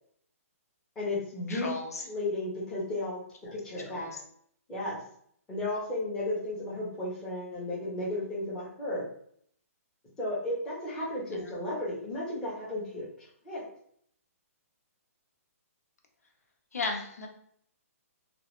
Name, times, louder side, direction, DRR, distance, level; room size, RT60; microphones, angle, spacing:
voice 1, 1.0-1.7 2.1-3.2 3.5-4.2 4.7-5.0 5.5-9.0 10.2-13.7, left 1 dB, 5° left, -7 dB, 0.7 m, -34 dB
voice 2, 1.5-2.0 3.8-4.2 11.3-11.5 16.7-17.3, left 3 dB, 80° left, 1 dB, 0.9 m, -35 dB
3.0 x 2.3 x 3.0 m, 0.65 s
hypercardioid pair, 175°, 8 cm